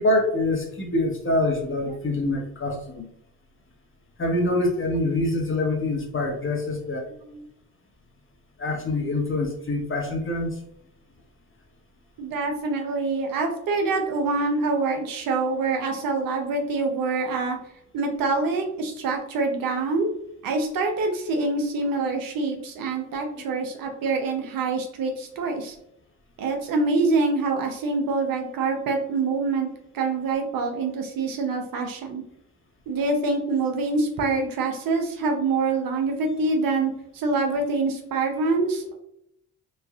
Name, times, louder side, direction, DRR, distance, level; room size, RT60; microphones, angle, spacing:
voice 1, 0.0-3.1 4.2-7.1 8.6-10.6 23.3-23.4, left 2 dB, 35° left, 1 dB, 1.0 m, -25 dB
voice 2, 12.2-17.6 17.9-20.1 20.4-25.7 26.4-29.7 29.9-32.2 32.9-38.9, right 3 dB, 70° right, 3 dB, 0.7 m, -25 dB
3.1 x 2.4 x 2.4 m, 0.73 s
supercardioid pair, 50°, 35 cm